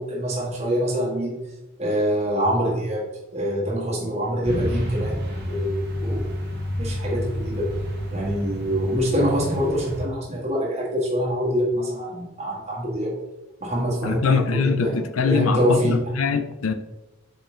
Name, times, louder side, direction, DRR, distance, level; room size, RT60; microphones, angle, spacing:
voice 1, 0.0-1.5 1.8-6.3 6.8-7.7 8.1-13.1 13.6-14.9 15.2-16.0, equal, 30° right, 1.6 m, -25 dB
Truck, 4.4-10.1, equal, 50° right, 1.3 m, -29 dB
voice 2, 14.0-16.7, left 5 dB, 80° left, 0.6 m, -23 dB
7.5 x 4.9 x 3.2 m
head